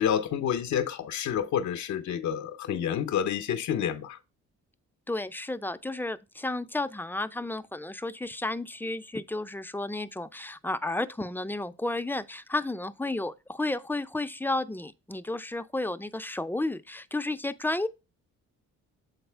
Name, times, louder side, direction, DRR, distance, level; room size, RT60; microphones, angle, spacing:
voice 1, 0.0-4.2, left 9 dB, 70° left, 0.7 m, -29 dB
voice 2, 5.1-17.9, left 2 dB, 5° left, 0.5 m, -32 dB
8.0 x 4.1 x 3.3 m
cardioid pair, 90°, 30 cm